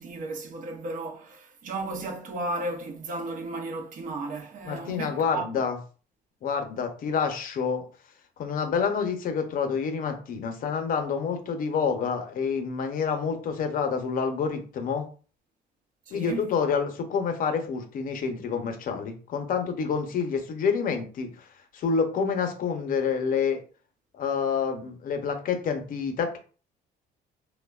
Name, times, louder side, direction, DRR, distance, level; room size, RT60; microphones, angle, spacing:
voice 1, 0.0-5.5 16.1-16.4, right 2 dB, 50° right, 0.6 m, -34 dB
voice 2, 4.6-5.8 6.4-7.8 8.4-15.0 16.1-21.5 21.7-23.6 24.1-26.4, left 6 dB, 55° left, 0.6 m, -28 dB
3.2 x 2.1 x 2.3 m
cardioid pair, 110°, 17 cm